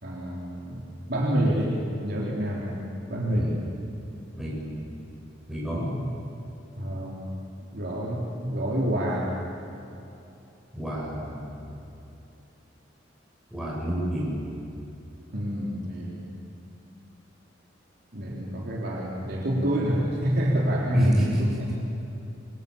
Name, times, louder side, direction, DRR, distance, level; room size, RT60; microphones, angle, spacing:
voice 1, 0.0-2.8 3.1-3.6 6.8-7.3 7.6-9.3 15.3-16.3 18.1-21.2, equal, 55° right, -4 dB, 3.9 m, -27 dB
voice 2, 4.4-4.8 5.5-6.0 10.7-11.6 13.5-14.4 20.9-21.4 21.7-21.8, equal, ahead, -6 dB, 7.5 m, -29 dB
28.0 x 24.0 x 8.9 m, 2.8 s
head